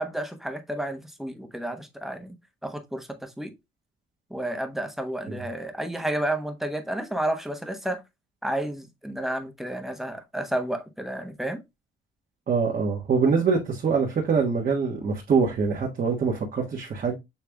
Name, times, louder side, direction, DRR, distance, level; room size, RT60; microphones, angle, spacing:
voice 1, 0.0-2.3 2.6-3.5 4.3-8.0 8.4-11.6, right 1 dB, ahead, 1.0 m, -31 dB
voice 2, 12.5-17.2, right 5 dB, 45° right, 1.4 m, -24 dB
7.0 x 3.3 x 2.2 m
cardioid pair, 90°, 20 cm